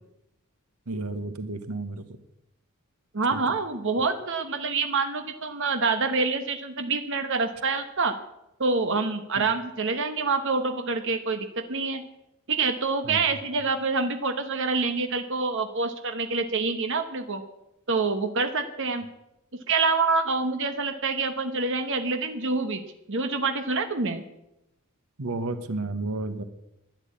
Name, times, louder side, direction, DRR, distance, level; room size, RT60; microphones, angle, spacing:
voice 1, 0.9-2.0 3.3-3.6 9.4-9.5 13.0-13.2 25.2-26.4, right 2 dB, 80° right, 10 dB, 1.3 m, -32 dB
voice 2, 3.1-8.1 8.6-12.0 12.5-17.4 17.9-19.0 19.7-22.8 23.1-24.2, right 4 dB, 60° right, 7 dB, 1.2 m, -26 dB
12.5 x 11.0 x 8.5 m, 0.87 s
head